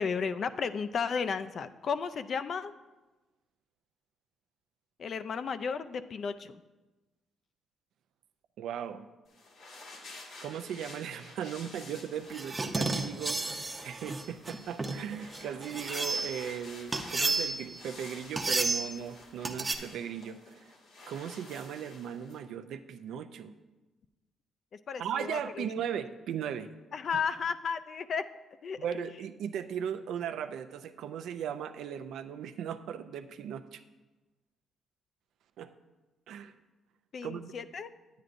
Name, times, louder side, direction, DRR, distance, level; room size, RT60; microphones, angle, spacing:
voice 1, 0.0-2.7 5.0-6.6 24.9-25.6 26.9-28.2 28.6-29.1 37.1-37.9, left 6 dB, 55° left, 11 dB, 0.4 m, -33 dB
voice 2, 8.6-9.1 10.4-20.6 21.1-23.5 25.0-26.7 27.1-27.2 28.8-33.8 35.6-35.7 36.3-36.5 37.2-37.5, right 8 dB, 80° right, 10 dB, 0.4 m, -37 dB
sound 1, 9.3-22.4, left 2 dB, 80° left, 1.8 m, -51 dB
sound 2, 12.3-16.4 16.9-17.8 18.4-19.0 19.4-19.8, right 3 dB, 20° right, 0.7 m, -32 dB
9.7 x 9.2 x 2.6 m, 1.1 s
cardioid pair, 90°, 0 cm